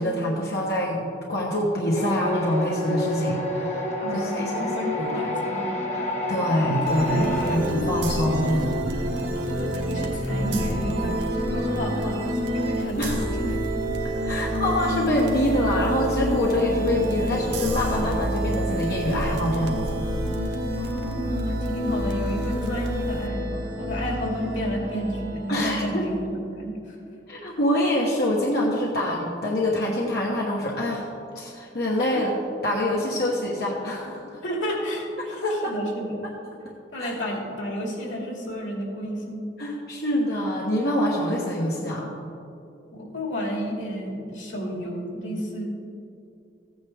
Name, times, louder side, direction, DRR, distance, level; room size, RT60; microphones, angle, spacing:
voice 1, 0.0-4.7 5.0-5.3 5.9-8.7 13.0-13.2 14.2-20.0 25.5-26.1 27.3-31.1 31.3-32.3 32.6-34.4 35.2-35.8 37.0-37.1 39.6-42.1, left 1 dB, 55° left, -3 dB, 1.1 m, -25 dB
sound 1, 1.9-7.6, left 1 dB, 35° left, 1.4 m, -28 dB
voice 2, 4.0-6.0 7.1-7.5 8.1-8.5 9.7-11.2 11.4-12.2 12.5-13.6 20.8-27.0 32.1-32.2 34.4-36.2 36.9-39.4 42.9-45.6, equal, 85° left, -1 dB, 2.5 m, -31 dB
sound 2, 6.8-26.1, equal, 80° right, 1.3 m, -28 dB
14.5 x 9.1 x 3.5 m, 2.6 s
head